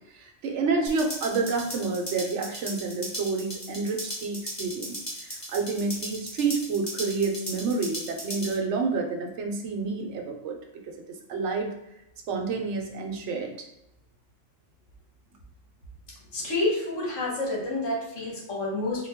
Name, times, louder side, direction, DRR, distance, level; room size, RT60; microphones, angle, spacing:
voice 1, 0.2-5.0 5.2-10.6 11.3-11.7 12.3-13.5, right 4 dB, 70° right, 2 dB, 0.9 m, -29 dB
sound 1, 0.9-8.5, equal, 15° left, 1.3 m, -37 dB
voice 2, 16.3-19.1, left 2 dB, 75° left, -3 dB, 1.5 m, -29 dB
3.8 x 2.2 x 3.5 m, 0.86 s
omnidirectional pair, 1.3 m